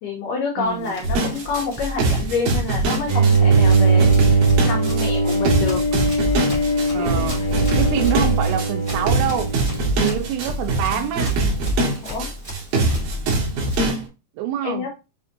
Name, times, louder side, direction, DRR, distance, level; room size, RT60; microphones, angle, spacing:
voice 1, 0.0-5.8 7.0-7.7 9.2-9.3 12.0-12.3 14.6-14.9, left 4 dB, 85° left, 1.9 m, -28 dB
Run, 0.6-13.9, left 2 dB, 50° right, 0.6 m, -33 dB
voice 2, 0.6-1.0 6.9-7.4 7.8-9.5 10.0-11.4 14.4-14.9, right 10 dB, 85° right, 2.9 m, -25 dB
sound 1, 1.0-14.0, right 2 dB, 65° right, 2.9 m, -23 dB
Bowed string instrument, 3.1-10.3, right 3 dB, 25° right, 1.0 m, -20 dB
7.4 x 2.5 x 2.5 m
omnidirectional pair, 5.0 m